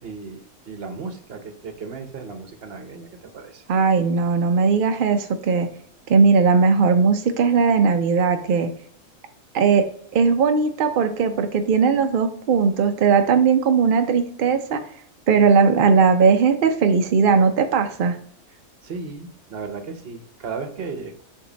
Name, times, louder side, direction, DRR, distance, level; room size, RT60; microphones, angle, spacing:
voice 1, 0.0-3.6 18.5-21.2, right 4 dB, 50° right, 7 dB, 0.9 m, -35 dB
voice 2, 3.7-5.7 6.1-8.7 9.5-9.9 10.1-14.8 15.3-18.2, right 5 dB, 70° right, 6 dB, 0.5 m, -18 dB
7.0 x 2.7 x 5.0 m, 0.62 s
omnidirectional pair, 1.5 m